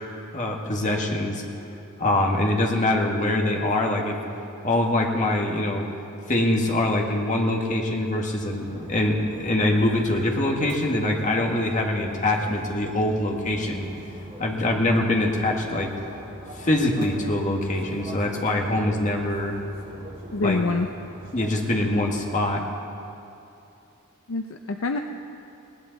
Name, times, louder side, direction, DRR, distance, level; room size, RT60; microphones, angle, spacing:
voice 1, 0.3-1.4 2.0-4.1 4.6-5.8 6.3-13.9 14.4-15.9 16.6-19.6 20.4-20.6 21.3-22.6, left 1 dB, 35° left, 1 dB, 1.6 m, -24 dB
sound 1, 8.3-22.4, right 1 dB, 40° right, 3.2 m, -42 dB
voice 2, 20.3-20.9 24.3-25.0, left 3 dB, 60° left, 5 dB, 0.6 m, -25 dB
20.5 x 17.5 x 4.0 m, 2.8 s
head